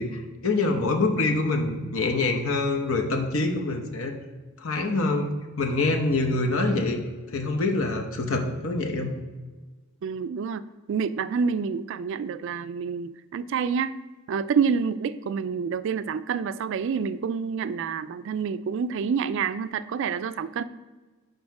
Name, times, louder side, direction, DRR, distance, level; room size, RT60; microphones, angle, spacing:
voice 1, 0.0-4.2 4.6-7.0 7.3-9.1, left 2 dB, 70° left, 4 dB, 0.9 m, -25 dB
voice 2, 10.0-10.6 10.9-13.9 14.3-20.6, right 6 dB, 60° right, 14 dB, 0.3 m, -28 dB
6.3 x 5.3 x 4.8 m, 1.3 s
head